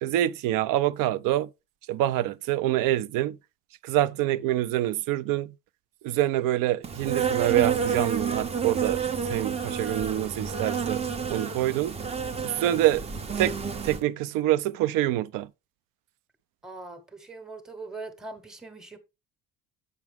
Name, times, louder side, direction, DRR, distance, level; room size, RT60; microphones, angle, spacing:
voice 1, 0.0-1.5 1.9-3.4 3.8-5.5 6.0-9.0 9.3-12.0 12.4-13.1 13.4-13.6 13.8-15.5, right 14 dB, 80° right, 0.6 m, -26 dB
Insect, 6.8-14.0, right 6 dB, 20° right, 0.5 m, -29 dB
voice 2, 16.6-19.0, right 3 dB, ahead, 0.9 m, -41 dB
8.4 x 6.0 x 3.5 m
cardioid pair, 175°, 33 cm